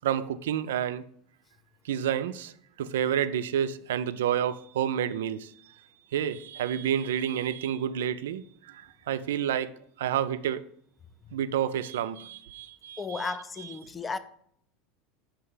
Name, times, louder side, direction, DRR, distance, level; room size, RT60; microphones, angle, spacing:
voice 1, 0.0-1.0 1.9-2.5 2.8-5.5 6.1-9.7 10.0-10.6 11.3-13.3, right 9 dB, 90° right, 0.3 m, -29 dB
voice 2, 13.0-14.2, left 4 dB, 20° left, 0.3 m, -34 dB
5.6 x 3.3 x 5.5 m
supercardioid pair, 110°, 0 cm